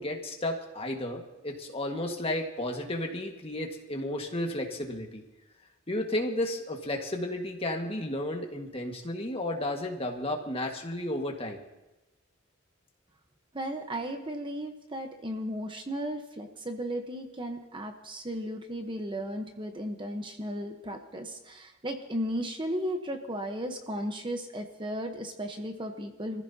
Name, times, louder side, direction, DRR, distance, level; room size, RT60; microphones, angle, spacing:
voice 1, 0.0-5.2 5.9-11.6, left 1 dB, 30° left, 2 dB, 1.7 m, -33 dB
voice 2, 13.5-26.4, equal, 25° right, 4 dB, 1.1 m, -35 dB
25.5 x 15.0 x 2.9 m, 0.99 s
head